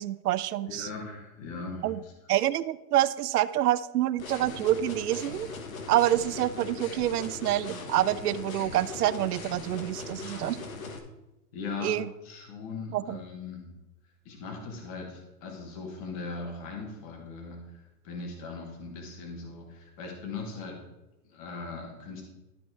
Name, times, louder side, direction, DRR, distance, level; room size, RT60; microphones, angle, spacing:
voice 1, 0.0-0.9 1.8-2.0 2.3-5.5 5.9-10.6 11.8-12.1 12.9-13.2, right 13 dB, 75° right, 17 dB, 0.6 m, -27 dB
voice 2, 0.6-2.1 11.5-13.7 14.2-20.8 21.2-22.2, left 4 dB, 25° left, 1 dB, 1.2 m, -39 dB
sound 1, 4.2-11.0, left 4 dB, 60° left, 1.4 m, -40 dB
12.5 x 4.2 x 4.5 m, 0.96 s
supercardioid pair, 175°, 46 cm